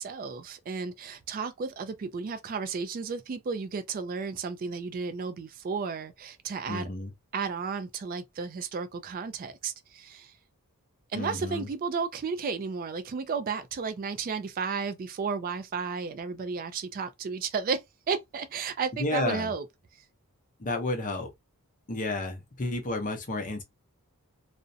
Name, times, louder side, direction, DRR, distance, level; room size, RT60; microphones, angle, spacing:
voice 1, 0.0-6.9 7.3-10.3 11.1-19.6, right 5 dB, 40° right, 0.3 m, -33 dB
voice 2, 6.7-7.1 11.1-11.7 19.0-19.5 20.6-21.3 21.9-23.6, left 2 dB, 35° left, 0.6 m, -31 dB
2.4 x 2.0 x 2.6 m
head